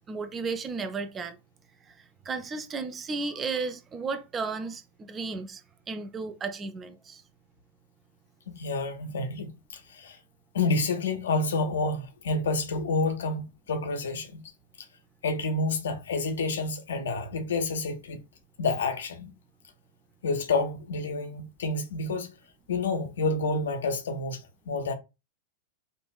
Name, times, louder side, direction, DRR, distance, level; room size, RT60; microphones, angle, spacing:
voice 1, 0.1-1.4 1.8-5.6 5.9-7.2, right 4 dB, 20° right, 0.5 m, -34 dB
voice 2, 8.5-10.2 10.5-14.4 14.8-14.9 15.2-18.2 18.6-19.3 20.2-22.3 22.7-24.9, left 3 dB, 65° left, 0.7 m, -29 dB
5.2 x 2.5 x 2.3 m
figure-of-eight pair, 90°, 0 cm